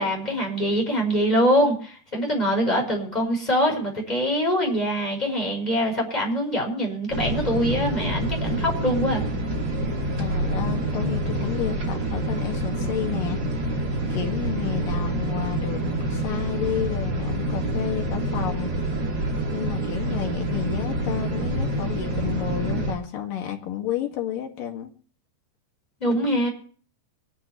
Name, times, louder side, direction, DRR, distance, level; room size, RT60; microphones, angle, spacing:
voice 1, 0.0-9.2 26.0-26.5, equal, 10° left, 0 dB, 4.9 m, -24 dB
sound 1, 7.1-22.9, right 1 dB, 30° right, 2.4 m, -27 dB
voice 2, 10.2-13.7 14.1-15.8 16.1-18.7 19.5-24.9, left 9 dB, 60° left, 2 dB, 3.4 m, -31 dB
24.0 x 11.0 x 3.0 m, 0.44 s
omnidirectional pair, 4.8 m